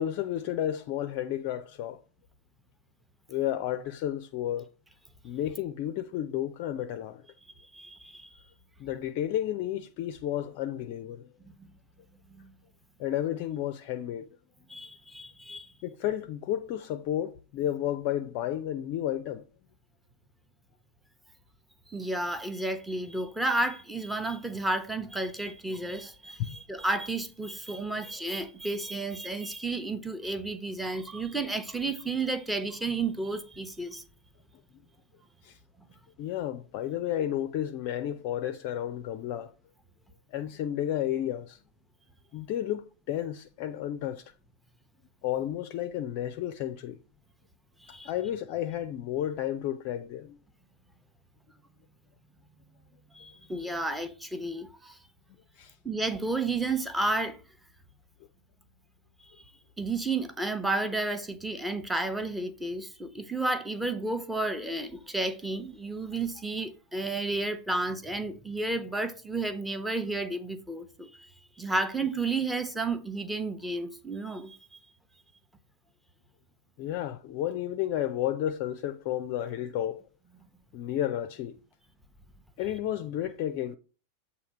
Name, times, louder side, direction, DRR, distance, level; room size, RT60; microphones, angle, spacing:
voice 1, 0.0-2.0 3.3-4.7 5.2-7.2 8.8-11.3 13.0-14.3 15.8-19.4 26.5-26.6 35.4-35.6 36.2-39.5 40.3-41.6 42.3-44.2 45.2-47.0 48.0-50.4 55.6-55.7 76.8-80.0 80.7-81.5 82.6-83.8, left 11 dB, 45° left, 0.4 m, -32 dB
voice 2, 7.7-8.3 11.6-11.7 12.3-12.5 14.7-15.7 21.9-34.0 47.8-48.1 53.1-55.0 55.8-57.4 59.8-71.3 71.6-74.6, right 2 dB, 5° right, 0.8 m, -32 dB
7.7 x 2.8 x 5.3 m
figure-of-eight pair, 90°, 0 cm